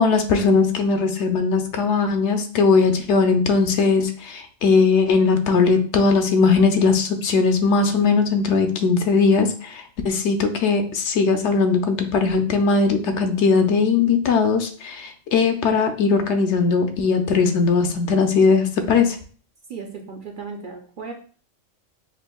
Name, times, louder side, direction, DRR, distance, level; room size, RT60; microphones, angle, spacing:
voice 1, 0.0-19.2, left 4 dB, 70° left, 7 dB, 0.9 m, -19 dB
voice 2, 19.7-21.1, right 5 dB, 55° right, 1 dB, 0.6 m, -35 dB
6.0 x 2.6 x 2.2 m, 0.42 s
omnidirectional pair, 1.3 m